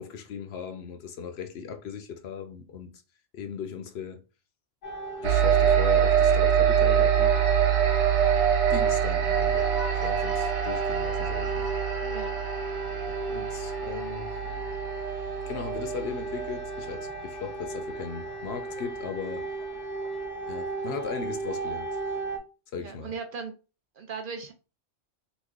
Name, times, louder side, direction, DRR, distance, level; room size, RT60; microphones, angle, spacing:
voice 1, 0.0-2.9 3.3-4.2 5.2-7.3 8.7-9.7 10.0-11.7 13.1-14.3 15.5-19.5 20.5-21.9 22.7-23.1, left 6 dB, 70° left, 0.8 m, -37 dB
sound 1, 4.8-22.4, right 3 dB, 85° left, 1.3 m, -35 dB
sound 2, 5.2-17.0, right 9 dB, 80° right, 0.9 m, -25 dB
voice 2, 12.0-12.4 13.8-14.0 22.7-23.6 24.0-24.5, right 5 dB, 60° right, 0.6 m, -38 dB
3.0 x 2.2 x 3.5 m
omnidirectional pair, 1.2 m